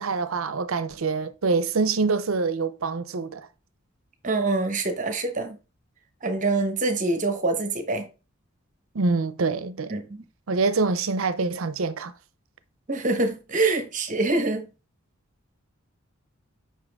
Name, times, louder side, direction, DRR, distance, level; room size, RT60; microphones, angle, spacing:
voice 1, 0.0-3.5 8.9-9.9 10.5-12.1, right 4 dB, 75° right, 0.6 m, -25 dB
voice 2, 4.2-5.6 6.2-8.1 9.9-10.2 12.9-14.7, right 3 dB, 35° right, 1.1 m, -25 dB
7.4 x 5.7 x 3.5 m
head